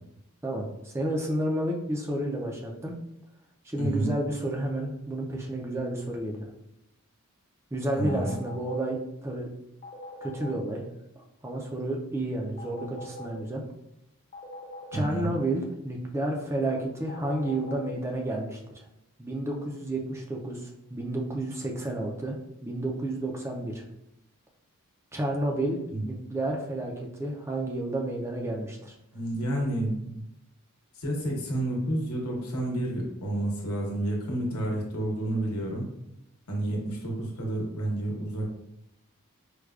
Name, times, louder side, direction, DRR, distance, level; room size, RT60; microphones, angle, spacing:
voice 1, 0.4-2.9 3.6-6.5 7.7-9.5 10.2-10.9 11.4-13.6 14.9-18.6 19.2-22.4 22.6-23.8 25.1-25.8 26.0-28.9, right 1 dB, 10° right, 0 dB, 0.3 m, -31 dB
voice 2, 3.8-4.1 8.0-8.3 14.9-15.3 25.9-26.1 29.1-30.2 31.0-35.9 36.5-38.5, right 1 dB, 80° left, -1 dB, 0.9 m, -30 dB
sound 1, 8.1-8.8 9.8-10.6 12.6-13.3 14.3-15.1 17.1-17.8, left 2 dB, 35° left, 0.6 m, -42 dB
4.6 x 2.2 x 2.3 m, 0.86 s
head